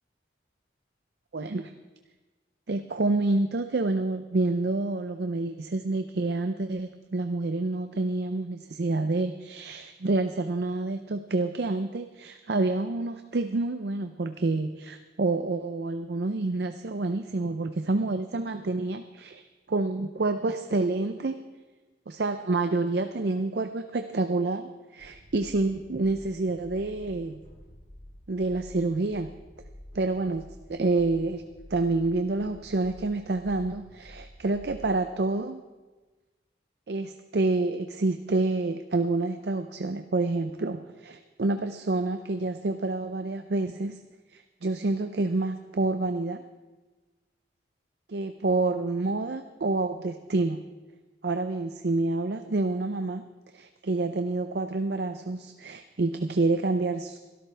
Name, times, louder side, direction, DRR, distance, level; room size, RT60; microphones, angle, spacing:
voice 1, 1.3-1.7 2.7-21.4 22.1-27.4 28.3-29.3 29.9-35.6 36.9-44.0 44.3-46.4 48.1-50.6 51.2-53.2 53.5-57.2, right 2 dB, 60° right, 8 dB, 0.6 m, -28 dB
sound 1, 25.0-34.9, equal, 30° left, 6.5 m, -49 dB
23.0 x 13.0 x 3.4 m, 1.2 s
head